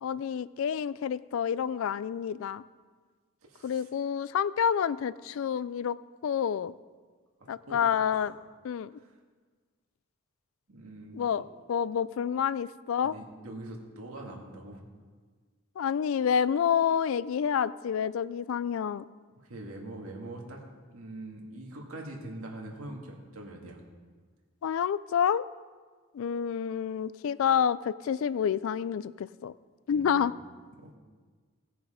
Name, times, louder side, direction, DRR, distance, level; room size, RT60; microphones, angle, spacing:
voice 1, 0.0-2.6 3.6-6.0 6.2-6.7 7.5-8.3 8.6-8.9 11.1-11.4 11.7-13.1 15.8-19.0 24.6-25.5 26.1-29.5 29.9-30.3, left 8 dB, 70° left, 18 dB, 0.3 m, -28 dB
voice 2, 3.5-3.9 7.6-7.8 8.1-8.3 8.9-9.1 10.7-11.4 13.0-14.8 19.4-20.6 20.9-23.8 29.9-30.2 30.8-31.0, right 1 dB, 80° right, 0 dB, 1.9 m, -43 dB
17.0 x 6.8 x 5.0 m, 1.5 s
head